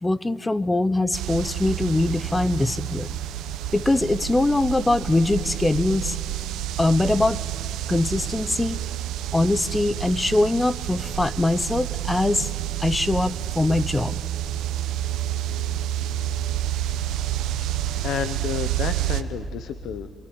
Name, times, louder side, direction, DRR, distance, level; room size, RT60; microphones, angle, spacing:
voice 1, 0.0-3.1 3.7-6.2 6.8-7.4 7.9-8.8 9.3-12.5 12.8-14.1, left 2 dB, 15° left, 17 dB, 0.6 m, -22 dB
sound 1, 1.1-19.2, right 12 dB, 90° right, 0.9 m, -29 dB
voice 2, 17.6-20.1, left 9 dB, 80° left, 12 dB, 0.8 m, -31 dB
27.0 x 21.0 x 9.6 m, 2.3 s
cardioid pair, 90°, 0 cm